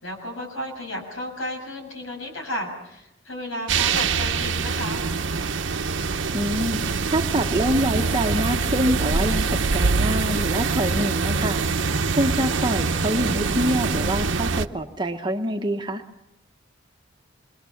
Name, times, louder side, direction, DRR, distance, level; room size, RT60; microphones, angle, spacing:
voice 1, 0.0-5.1, left 1 dB, 85° left, 2 dB, 7.2 m, -33 dB
sound 1, 3.7-14.7, right 4 dB, 70° right, 0.9 m, -24 dB
voice 2, 6.3-11.6 12.2-16.0, equal, 20° right, 4 dB, 1.0 m, -25 dB
27.0 x 22.5 x 7.2 m, 0.85 s
head